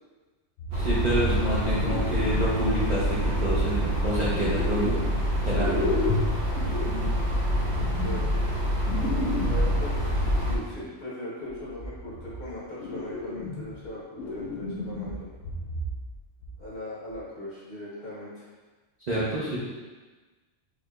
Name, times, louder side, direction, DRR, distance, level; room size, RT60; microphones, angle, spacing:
sound 1, 0.6-2.8 3.2-5.2 5.5-10.5 11.5-12.5 12.8-13.9 14.2-16.2 16.4-16.6 17.1-17.2, left 1 dB, 90° left, 1.0 m, -33 dB
voice 1, 0.7-5.0 5.4-5.9 19.1-19.6, right 1 dB, 45° right, -9 dB, 0.6 m, -27 dB
sound 2, 0.7-10.6, equal, 65° right, 1.0 m, -27 dB
voice 2, 7.7-8.4 9.4-15.2 16.6-18.5, left 1 dB, 50° left, -8 dB, 1.2 m, -39 dB
4.9 x 2.8 x 2.3 m, 1.3 s
omnidirectional pair, 1.3 m